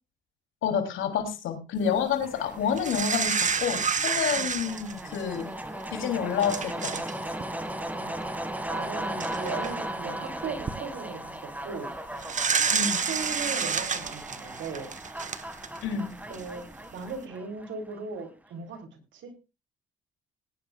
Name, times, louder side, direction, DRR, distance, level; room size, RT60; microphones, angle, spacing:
voice 1, 0.6-5.5 5.9-6.9 12.7-13.0 15.8-16.1, left 7 dB, 85° left, 5 dB, 3.1 m, -29 dB
sound 1, 2.2-18.2, right 1 dB, 10° right, 1.8 m, -37 dB
sound 2, 2.8-5.4 6.0-6.1 6.4-7.1 7.4-7.6 8.7-8.8 9.2-9.7 10.4-10.7 12.2-15.9 16.3-16.4, right 6 dB, 40° right, 1.2 m, -29 dB
voice 2, 7.9-8.3 8.7-11.3 11.6-11.9 13.1-14.9 16.3-16.6 16.9-18.8 19.1-19.3, right 5 dB, 75° right, 6 dB, 3.2 m, -37 dB
19.5 x 10.5 x 2.4 m, 0.27 s
cardioid pair, 90°, 20 cm